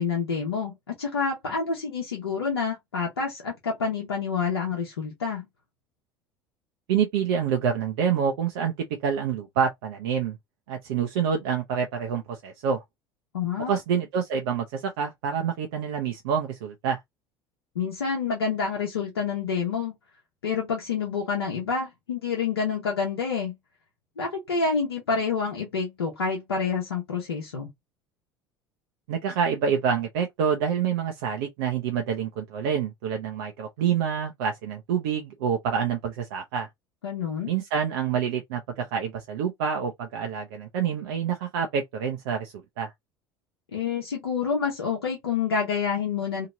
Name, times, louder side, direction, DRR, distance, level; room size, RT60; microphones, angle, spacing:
voice 1, 0.0-5.4 13.3-13.8 17.7-19.9 20.4-23.6 24.2-27.7 37.0-37.5 43.7-46.5, left 5 dB, 85° left, 1.0 m, -28 dB
voice 2, 6.9-10.4 10.7-12.8 13.6-17.0 29.1-36.7 37.5-42.9, right 7 dB, 70° right, 0.7 m, -27 dB
2.9 x 2.8 x 2.6 m
hypercardioid pair, 65°, 13 cm